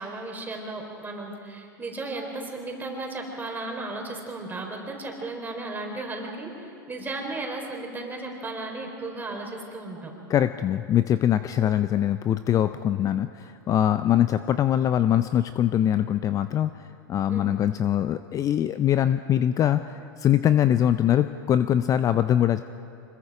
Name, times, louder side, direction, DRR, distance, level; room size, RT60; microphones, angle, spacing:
voice 1, 0.0-10.1 11.6-11.8 17.3-17.6, right 2 dB, 15° right, 1 dB, 4.0 m, -35 dB
voice 2, 10.3-22.6, left 10 dB, 30° left, 12 dB, 0.5 m, -23 dB
26.0 x 21.5 x 5.0 m, 2.6 s
hypercardioid pair, 110°, 12 cm